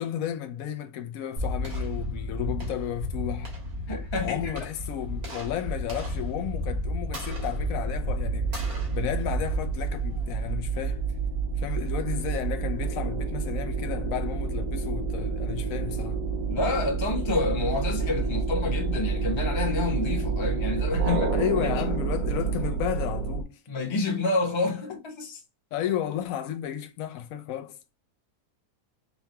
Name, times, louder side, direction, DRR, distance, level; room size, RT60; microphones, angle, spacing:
voice 1, 0.0-3.5 4.2-11.1 11.6-16.2 21.3-23.6 25.7-27.8, left 10 dB, 70° left, 1.0 m, -33 dB
sound 1, 1.4-10.5, left 1 dB, 90° right, 2.1 m, -33 dB
voice 2, 3.9-4.6 16.5-21.3 21.6-21.8 23.7-25.4, left 3 dB, 25° left, 0.8 m, -28 dB
sound 2, 7.3-23.4, right 5 dB, 70° right, 1.3 m, -29 dB
5.6 x 2.2 x 2.9 m
omnidirectional pair, 1.5 m